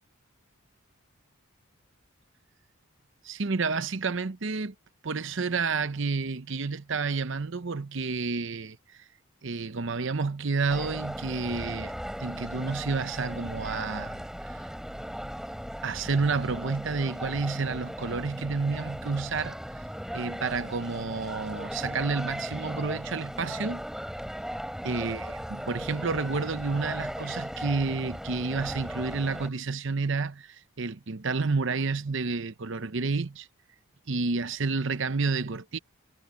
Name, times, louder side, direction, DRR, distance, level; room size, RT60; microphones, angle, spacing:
voice 1, 3.2-4.7 5.0-8.8 9.4-11.9 12.2-14.6 15.8-19.6 20.1-23.8 24.8-33.5 34.1-35.8, right 4 dB, 60° right, 0.8 m, -30 dB
sound 1, 10.7-29.5, equal, ahead, 6.1 m, -37 dB
head